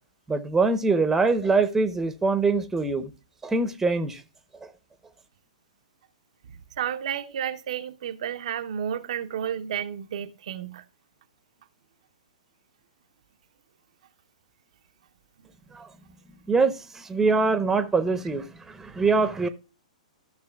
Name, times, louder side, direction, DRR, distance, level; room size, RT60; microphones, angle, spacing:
voice 1, 0.3-3.1 3.4-4.2 15.7-15.9 16.5-19.5, right 4 dB, 10° right, 0.8 m, -23 dB
voice 2, 6.8-10.8, right 9 dB, 60° right, 0.6 m, -31 dB
14.5 x 6.1 x 2.3 m
figure-of-eight pair, 115°, 4 cm